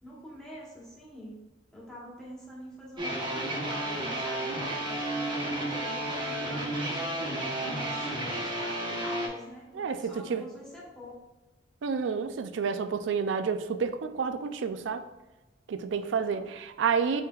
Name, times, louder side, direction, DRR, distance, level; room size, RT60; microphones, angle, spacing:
voice 1, 0.0-1.4 1.7-7.2 7.6-11.1 16.3-16.4, left 1 dB, 5° left, -7 dB, 1.3 m, -45 dB
Metal Backing Track, 3.0-9.3, right 1 dB, 25° right, 1.0 m, -32 dB
voice 2, 9.7-10.4 11.8-15.0 15.7-17.2, right 6 dB, 70° right, 10 dB, 0.4 m, -30 dB
5.7 x 3.3 x 2.3 m, 1.1 s
head